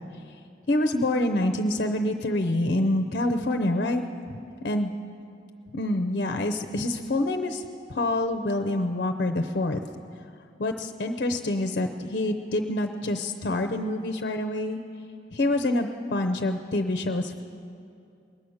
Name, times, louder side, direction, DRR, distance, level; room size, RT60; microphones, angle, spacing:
voice 1, 0.7-4.0 4.6-4.9 5.7-7.6 7.9-9.8 10.6-14.8 15.3-17.4, left 1 dB, 55° left, 7 dB, 0.6 m, -26 dB
21.0 x 8.6 x 6.4 m, 2.5 s
head